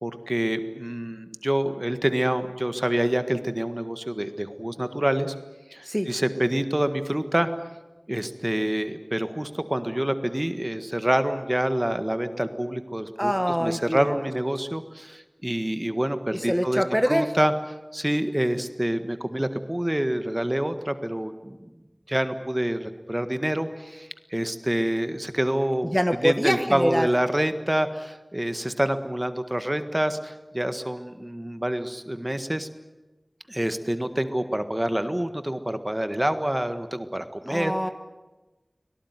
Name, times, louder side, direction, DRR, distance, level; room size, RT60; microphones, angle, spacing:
voice 1, 0.0-5.3 5.7-7.5 8.1-13.3 13.6-17.5 17.9-21.7 22.1-25.9 26.2-32.7 33.5-37.7, right 1 dB, 25° right, 10 dB, 1.7 m, -27 dB
voice 2, 13.2-14.3 16.3-17.3 25.8-27.1 37.5-37.9, equal, ahead, 8 dB, 1.3 m, -25 dB
25.0 x 18.0 x 9.7 m, 1.1 s
wide cardioid pair, 45°, 0 cm